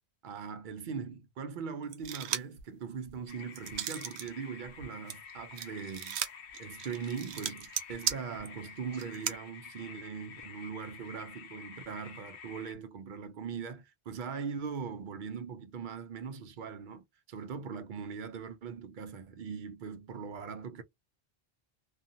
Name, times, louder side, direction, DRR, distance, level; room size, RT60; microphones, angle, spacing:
voice 1, 0.2-6.2 6.6-20.8, right 6 dB, 60° right, 0.6 m, -40 dB
sound 1, 1.9-2.6 3.1-4.3 4.6-9.4, right 9 dB, 90° right, 0.9 m, -37 dB
sound 2, 3.3-12.7, left 6 dB, 65° left, 0.8 m, -50 dB
2.6 x 2.4 x 2.5 m
omnidirectional pair, 1.1 m